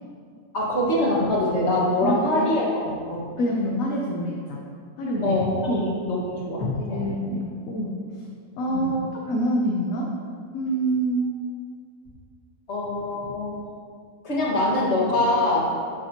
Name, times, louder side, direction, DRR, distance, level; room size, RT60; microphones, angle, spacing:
voice 1, 0.5-2.7 3.1-3.3 5.2-5.5 5.9-7.1 8.7-8.9 12.7-13.6 14.2-15.7, left 1 dB, 40° left, -5 dB, 2.1 m, -24 dB
voice 2, 2.0-2.5 3.4-4.6 5.0-5.4 5.7-5.8 6.6-7.9 8.6-10.1 10.5-11.3, right 1 dB, 60° left, -2 dB, 1.2 m, -26 dB
11.5 x 7.5 x 3.0 m, 2.2 s
omnidirectional pair, 1.7 m